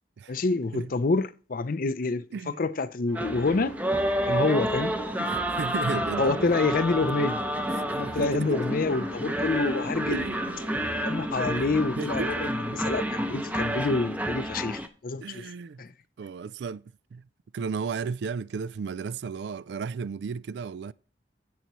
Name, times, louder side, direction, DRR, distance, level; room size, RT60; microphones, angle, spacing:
voice 1, 0.3-3.8 4.2-4.9 6.2-7.4 7.9-10.2 11.0-15.5 15.8-15.9, left 3 dB, 50° left, 0.5 m, -27 dB
sound 1, 3.1-14.9, equal, 10° right, 0.7 m, -29 dB
sound 2, 3.1-11.4, right 5 dB, 85° right, 1.2 m, -47 dB
voice 2, 5.2-6.5 7.0-7.1 7.7-8.5 10.1-10.6 12.0-12.4 12.7-12.9 15.2-15.8 16.2-16.8 17.1-17.2 17.5-20.9, right 5 dB, 65° right, 0.3 m, -34 dB
16.0 x 5.7 x 3.0 m
head